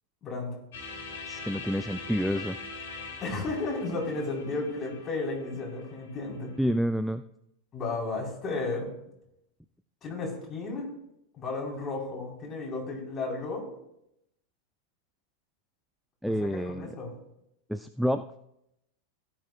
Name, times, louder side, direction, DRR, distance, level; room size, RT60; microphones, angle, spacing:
voice 1, 0.2-0.6 3.2-6.5 7.7-8.9 10.0-10.9 11.4-13.7 16.3-17.1, left 3 dB, 25° left, -2 dB, 4.0 m, -33 dB
sound 1, 0.7-6.6, left 4 dB, 60° left, 3.6 m, -43 dB
voice 2, 1.3-2.6 6.6-7.2 16.2-16.9 17.7-18.2, equal, ahead, 10 dB, 0.3 m, -28 dB
16.5 x 10.5 x 2.3 m, 0.81 s
figure-of-eight pair, 90°, 0 cm